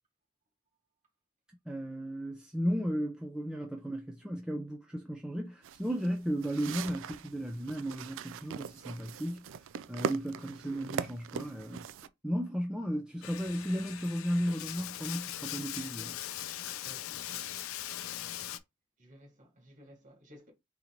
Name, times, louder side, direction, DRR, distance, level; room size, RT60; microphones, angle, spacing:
voice 1, 1.7-9.4 9.9-11.9 12.2-16.2, equal, 5° right, 0.5 m, -34 dB
sound 1, 5.6-12.1, right 7 dB, 65° right, 0.3 m, -40 dB
Bathtub (filling or washing), 13.2-18.6, left 12 dB, 65° left, 0.5 m, -40 dB
voice 2, 16.5-17.6 19.0-20.5, equal, 35° right, 1.8 m, -57 dB
3.9 x 2.9 x 4.3 m
head